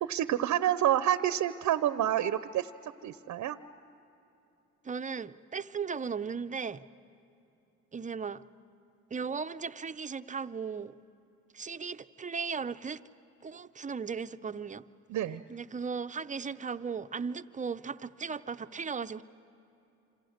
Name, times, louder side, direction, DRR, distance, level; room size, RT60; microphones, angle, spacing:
voice 1, 0.0-2.7 3.0-3.6 15.1-15.4, right 11 dB, 70° right, 0.7 m, -28 dB
voice 2, 4.8-6.9 7.9-8.4 9.1-11.0 11.5-13.0 13.4-14.8 15.5-19.2, right 5 dB, 25° right, 0.6 m, -36 dB
27.5 x 26.0 x 6.5 m
cardioid pair, 90°, 30 cm